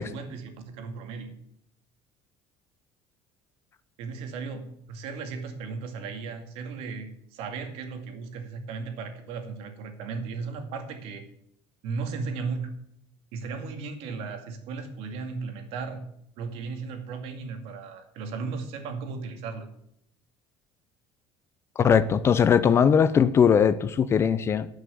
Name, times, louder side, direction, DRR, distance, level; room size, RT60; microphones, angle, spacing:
voice 1, 0.0-1.3 4.0-11.3 11.8-12.7 13.3-16.0 16.4-19.7, right 4 dB, 65° right, 6 dB, 2.2 m, -36 dB
voice 2, 21.8-24.7, left 7 dB, 25° left, 14 dB, 0.5 m, -20 dB
12.5 x 6.4 x 8.1 m, 0.73 s
cardioid pair, 175°, 11 cm